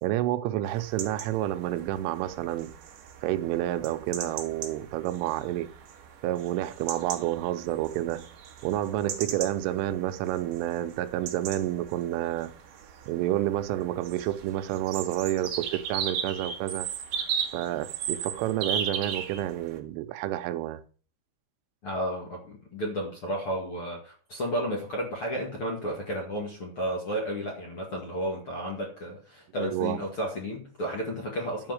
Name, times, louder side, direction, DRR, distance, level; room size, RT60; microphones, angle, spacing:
voice 1, 0.0-2.7 3.2-5.7 6.2-8.3 8.6-12.5 13.1-16.9 17.5-20.8 29.6-30.0, right 14 dB, 85° right, 3.2 m, -29 dB
sound 1, 0.7-19.8, right 7 dB, 60° right, 2.5 m, -37 dB
voice 2, 21.8-31.7, equal, 45° left, 1.9 m, -32 dB
12.0 x 4.9 x 7.8 m
omnidirectional pair, 5.6 m